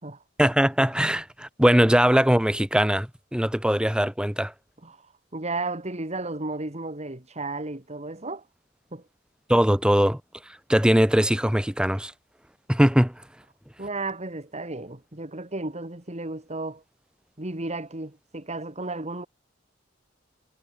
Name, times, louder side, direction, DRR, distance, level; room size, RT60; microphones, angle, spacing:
voice 1, 0.4-4.5 9.5-10.2 10.7-12.1 12.7-13.1, equal, 5° right, 1.5 m, -21 dB
voice 2, 4.8-8.4 8.9-9.0 13.8-16.8 17.4-19.3, right 2 dB, 35° right, 2.7 m, -33 dB
head